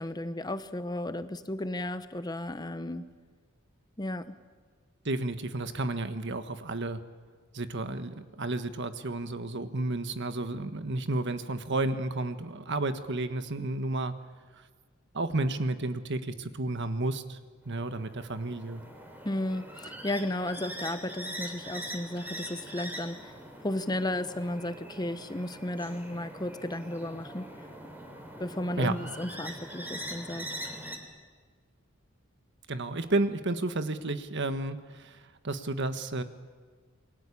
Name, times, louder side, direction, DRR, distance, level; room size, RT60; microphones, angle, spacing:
voice 1, 0.0-3.0 4.0-4.3 19.2-23.3 23.6-27.5 28.4-30.5, left 1 dB, 20° left, 11 dB, 0.9 m, -34 dB
voice 2, 5.0-7.0 7.5-14.1 15.1-17.4 17.6-18.8 28.8-29.0 32.7-35.2 35.4-36.2, right 2 dB, 55° right, 10 dB, 1.4 m, -31 dB
sound 1, 17.7-31.0, right 1 dB, 10° right, 3.6 m, -43 dB
28.0 x 22.0 x 8.5 m, 1.5 s
head